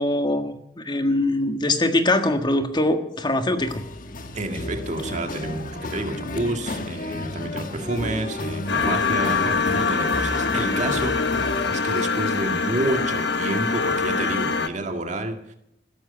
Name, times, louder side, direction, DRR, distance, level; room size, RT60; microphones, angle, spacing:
voice 1, 0.0-3.8, left 1 dB, 25° left, 1.5 m, -22 dB
sound 1, 3.6-11.7, left 1 dB, 50° left, 1.3 m, -32 dB
voice 2, 4.3-11.2 11.7-15.5, right 1 dB, 45° right, 2.0 m, -29 dB
sound 2, 8.7-14.7, left 4 dB, 75° left, 1.1 m, -24 dB
16.0 x 13.0 x 6.8 m
head